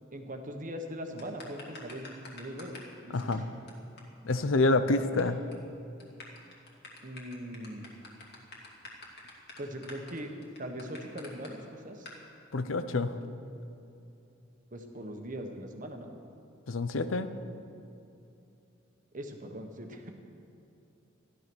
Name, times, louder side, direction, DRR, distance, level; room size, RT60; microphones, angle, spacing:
voice 1, 0.1-3.3 7.0-7.9 9.6-10.3 10.6-12.1 14.7-16.1 19.1-20.1, equal, 45° right, 4 dB, 1.4 m, -41 dB
sound 1, 1.2-2.9 3.2-3.3 3.7-3.8 4.0-4.1 4.3-4.4 4.6-5.2 5.5-5.7 6.0-11.5 12.0-12.2, left 2 dB, 55° left, 2.6 m, -47 dB
voice 2, 3.1-3.4 4.2-5.4 12.5-13.2 16.7-17.3, left 2 dB, 85° left, 11 dB, 0.8 m, -27 dB
14.0 x 12.0 x 6.3 m, 2.8 s
head